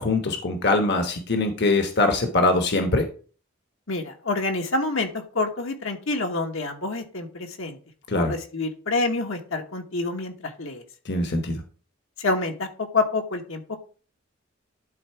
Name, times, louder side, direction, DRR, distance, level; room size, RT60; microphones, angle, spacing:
voice 1, 0.0-3.1 8.1-8.3 11.1-11.6, left 2 dB, 55° left, 5 dB, 1.1 m, -22 dB
voice 2, 3.9-7.8 8.1-10.8 12.2-12.7 12.9-13.8, left 3 dB, 70° left, 3 dB, 1.3 m, -27 dB
11.5 x 4.0 x 4.5 m, 0.40 s
head